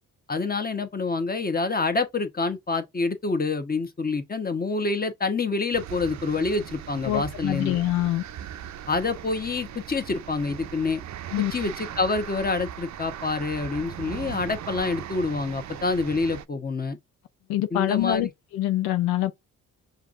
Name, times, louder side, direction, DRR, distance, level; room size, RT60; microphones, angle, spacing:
voice 1, 0.3-7.8 8.9-11.0 11.5-17.0 17.7-18.3, left 3 dB, 25° left, 1.1 m, -27 dB
sound 1, 5.7-16.4, right 10 dB, 50° right, 0.5 m, -39 dB
voice 2, 7.1-8.2 11.3-11.5 17.5-18.3 18.5-19.3, left 14 dB, 90° left, 0.5 m, -25 dB
5.6 x 2.6 x 2.5 m
supercardioid pair, 60°, 36 cm